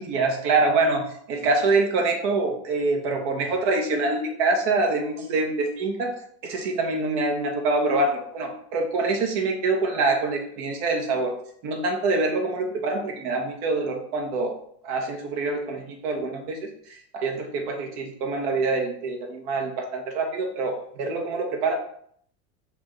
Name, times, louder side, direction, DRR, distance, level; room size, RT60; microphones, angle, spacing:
voice 1, 0.0-6.1 6.4-11.3 11.6-14.5 14.8-16.7 17.1-21.8, right 3 dB, 70° right, 2 dB, 1.2 m, -25 dB
6.0 x 2.5 x 3.2 m, 0.64 s
supercardioid pair, 140°, 35 cm